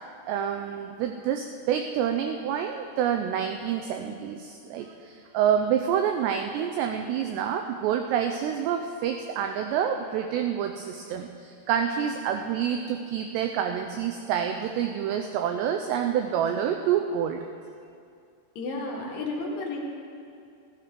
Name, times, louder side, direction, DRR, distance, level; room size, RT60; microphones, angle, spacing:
voice 1, 0.3-17.4, right 8 dB, 90° right, 6 dB, 2.4 m, -27 dB
voice 2, 18.6-19.8, left 3 dB, 65° left, -2 dB, 3.5 m, -32 dB
14.5 x 12.5 x 5.1 m, 2.5 s
omnidirectional pair, 5.5 m